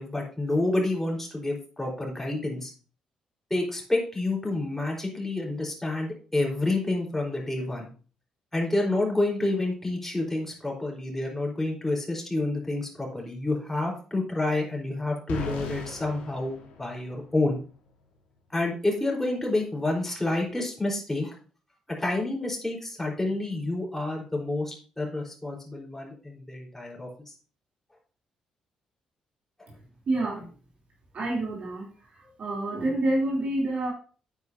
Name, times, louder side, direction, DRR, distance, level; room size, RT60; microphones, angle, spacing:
voice 1, 0.0-2.7 3.5-7.9 8.5-17.6 18.5-21.3 22.0-27.3, left 2 dB, 10° left, -1 dB, 4.1 m, -29 dB
sound 1, 15.3-17.4, left 3 dB, 70° left, 1.6 m, -38 dB
voice 2, 30.1-30.5 31.1-31.8 32.4-33.9, right 2 dB, 50° right, -3 dB, 3.1 m, -27 dB
9.2 x 8.4 x 2.7 m, 0.39 s
hypercardioid pair, 40°, 3 cm